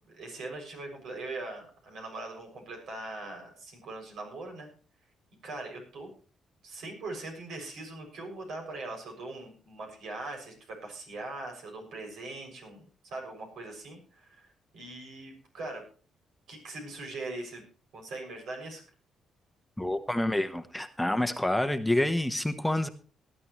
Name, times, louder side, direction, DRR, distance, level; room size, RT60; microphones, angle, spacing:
voice 1, 0.0-4.7 5.4-6.1 6.6-15.8 16.5-17.6 17.9-18.8, right 2 dB, 75° right, 2 dB, 6.7 m, -41 dB
voice 2, 19.8-22.9, left 1 dB, 5° left, 8 dB, 1.0 m, -28 dB
19.0 x 11.0 x 3.1 m, 0.39 s
cardioid pair, 90°, 0 cm